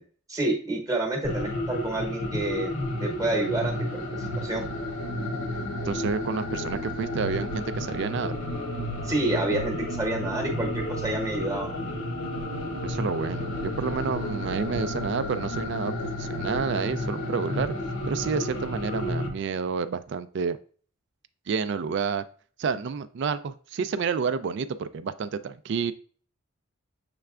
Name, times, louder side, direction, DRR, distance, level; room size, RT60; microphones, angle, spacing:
voice 1, 0.3-2.7 3.0-4.6 9.0-11.9, right 2 dB, 15° right, 1 dB, 0.9 m, -29 dB
sound 1, 1.2-19.3, left 1 dB, 70° left, 0.8 m, -31 dB
voice 2, 5.8-8.3 12.8-17.7 18.1-20.6 21.5-22.3 22.6-25.9, right 5 dB, 55° right, 13 dB, 0.3 m, -29 dB
6.8 x 3.2 x 2.4 m, 0.43 s
head